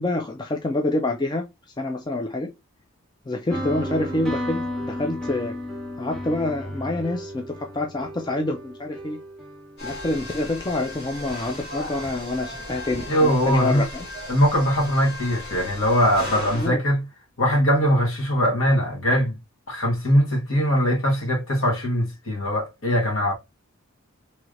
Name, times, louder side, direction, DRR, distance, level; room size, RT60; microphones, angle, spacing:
voice 1, 0.0-1.4 1.8-2.5 3.3-5.5 6.0-9.2 9.8-14.1 16.3-16.8, left 2 dB, 20° left, 0.3 m, -27 dB
sound 1, 3.5-10.4, equal, ahead, 1.0 m, -33 dB
sound 2, 9.8-16.7, left 1 dB, 50° left, 1.8 m, -36 dB
voice 2, 13.1-13.8 14.3-17.0 17.4-19.3 19.7-23.3, equal, 65° left, 1.3 m, -21 dB
3.2 x 3.1 x 2.4 m
head